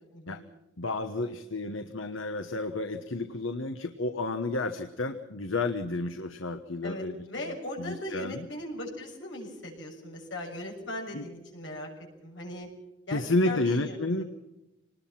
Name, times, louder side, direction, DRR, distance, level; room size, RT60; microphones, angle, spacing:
voice 1, 0.1-0.4 6.8-11.9 12.2-12.7 13.1-14.3, left 1 dB, 70° left, 1 dB, 6.7 m, -39 dB
voice 2, 0.8-8.5 11.1-11.2 13.1-14.3, left 2 dB, 90° left, 8 dB, 1.2 m, -31 dB
26.0 x 20.0 x 5.9 m, 0.95 s
head